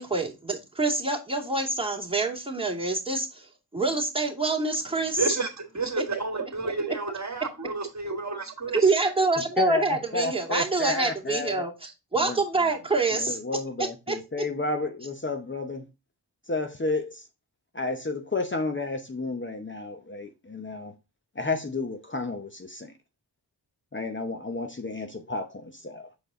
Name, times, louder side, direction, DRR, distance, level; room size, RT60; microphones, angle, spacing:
voice 1, 0.0-5.2 8.7-13.4 14.1-14.2, right 3 dB, 15° right, 2.5 m, -26 dB
voice 2, 5.1-8.9, right 3 dB, 40° right, 1.6 m, -31 dB
voice 3, 9.6-11.7 12.2-12.4 13.1-15.9 16.5-17.2 17.7-20.9 21.4-22.9 23.9-26.1, left 3 dB, 30° left, 0.9 m, -31 dB
6.9 x 4.5 x 3.8 m
wide cardioid pair, 65°, 41 cm